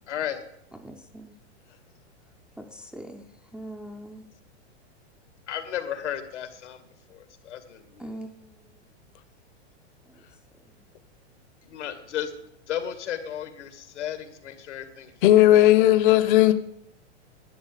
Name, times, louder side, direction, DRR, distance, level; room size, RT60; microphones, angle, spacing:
voice 1, 0.1-0.4 5.5-8.1 11.6-12.3 12.7-15.9, left 10 dB, 90° left, 2.2 m, -34 dB
voice 2, 0.8-1.3 2.6-4.3 8.0-8.5, right 1 dB, 5° right, 0.4 m, -41 dB
voice 3, 15.2-16.5, left 14 dB, 50° left, 0.8 m, -16 dB
11.0 x 7.2 x 9.2 m
supercardioid pair, 150°, 34 cm